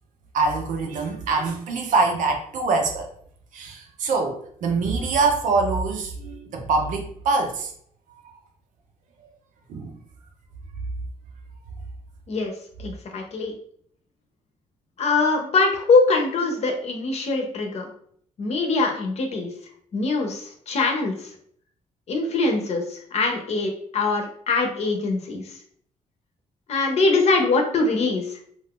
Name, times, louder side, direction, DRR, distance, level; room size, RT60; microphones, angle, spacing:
voice 1, 0.3-3.1 3.5-7.7 9.7-9.9, right 3 dB, 80° right, 3 dB, 0.7 m, -24 dB
voice 2, 12.8-13.5 15.0-17.9 18.4-19.5 19.9-21.3 22.1-25.5 26.7-28.4, left 3 dB, 55° left, 4 dB, 0.7 m, -23 dB
2.5 x 2.4 x 3.6 m, 0.62 s
cardioid pair, 125°, 13 cm